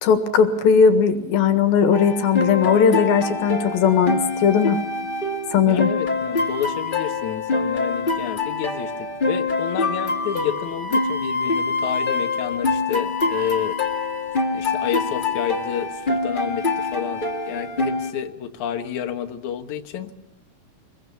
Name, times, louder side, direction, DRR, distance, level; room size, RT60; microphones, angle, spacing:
voice 1, 0.0-4.8 5.5-5.9, left 6 dB, 85° left, 9 dB, 3.5 m, -18 dB
sound 1, 1.9-18.1, left 3 dB, 25° left, 1.1 m, -25 dB
voice 2, 5.7-13.8 14.5-20.1, left 9 dB, 60° left, 5 dB, 2.5 m, -30 dB
24.0 x 22.0 x 7.0 m, 0.76 s
omnidirectional pair, 4.1 m